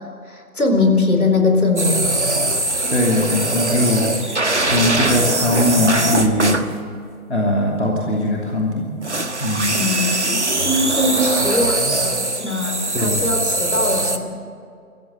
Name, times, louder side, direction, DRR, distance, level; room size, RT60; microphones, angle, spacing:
voice 1, 0.0-2.1 9.7-14.4, left 2 dB, 70° left, 4 dB, 4.4 m, -21 dB
sound 1, 1.8-6.7 9.0-14.2, right 2 dB, 50° right, 1.4 m, -21 dB
voice 2, 2.9-4.3 4.6-6.6 7.3-8.9 9.4-9.7 12.9-13.2, left 1 dB, 50° left, -2 dB, 2.9 m, -20 dB
26.0 x 15.0 x 7.8 m, 2.3 s
figure-of-eight pair, 180°, 45 cm